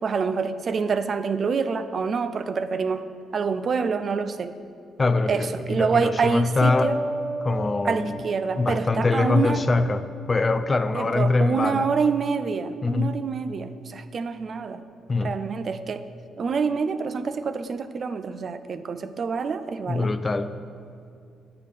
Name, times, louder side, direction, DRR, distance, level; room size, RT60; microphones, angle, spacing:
voice 1, 0.0-3.1 3.3-4.6 5.3-7.0 7.8-9.6 10.9-14.8 15.2-16.1 16.4-20.1, right 5 dB, 50° right, 11 dB, 0.3 m, -26 dB
voice 2, 5.0-7.0 7.4-8.2 8.6-11.9 12.8-13.3 15.1-15.4 19.9-20.5, left 3 dB, 25° left, 11 dB, 0.4 m, -23 dB
sound 1, 6.6-11.8, right 1 dB, 75° right, 1.2 m, -35 dB
9.2 x 6.6 x 3.4 m, 2.4 s
cardioid pair, 90°, 0 cm